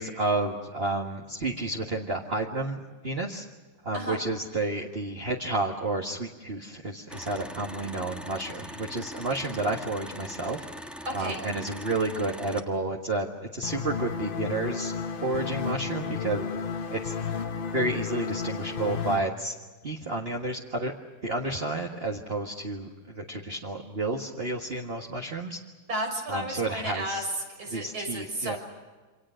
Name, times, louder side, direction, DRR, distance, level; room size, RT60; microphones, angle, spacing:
voice 1, 0.0-3.5 3.8-10.6 11.1-14.9 15.2-16.4 16.9-17.1 17.7-19.5 19.8-20.9 21.2-25.6 26.3-27.3 27.7-28.6, right 2 dB, 30° right, 0 dB, 1.7 m, -31 dB
sound 1, 7.1-12.6, equal, ahead, 1.3 m, -42 dB
voice 2, 11.1-11.4 25.9-27.3 27.6-28.6, right 1 dB, 85° right, 2 dB, 7.2 m, -33 dB
sound 2, 13.6-19.2, left 6 dB, 45° left, 0.7 m, -32 dB
28.5 x 26.0 x 6.3 m, 1.3 s
omnidirectional pair, 2.2 m